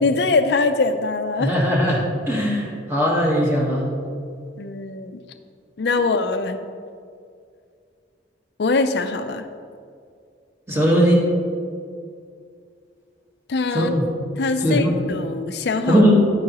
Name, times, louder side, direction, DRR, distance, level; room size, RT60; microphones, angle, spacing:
voice 1, 0.0-1.6 4.6-5.2 5.8-6.6 8.6-9.5 13.5-13.9 14.4-16.0, left 3 dB, 65° left, 9 dB, 0.5 m, -22 dB
voice 2, 1.4-2.0 2.3-3.9 10.7-11.2 13.7-14.0 14.6-14.9 15.9-16.3, equal, 15° right, -4 dB, 1.3 m, -18 dB
9.5 x 9.4 x 3.0 m, 2.3 s
head